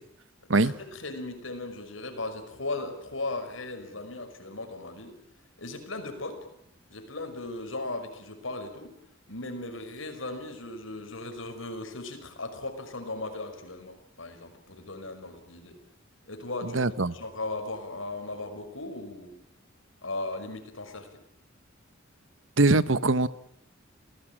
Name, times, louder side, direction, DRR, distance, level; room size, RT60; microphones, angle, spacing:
voice 1, 0.6-5.1 5.6-6.4 6.9-8.9 9.3-15.8 16.3-16.8 17.1-19.3 20.0-21.2, left 2 dB, 80° left, 7 dB, 5.6 m, -37 dB
voice 2, 16.6-17.1 22.6-23.3, right 2 dB, 70° right, 15 dB, 1.1 m, -22 dB
28.5 x 18.0 x 8.8 m, 0.72 s
head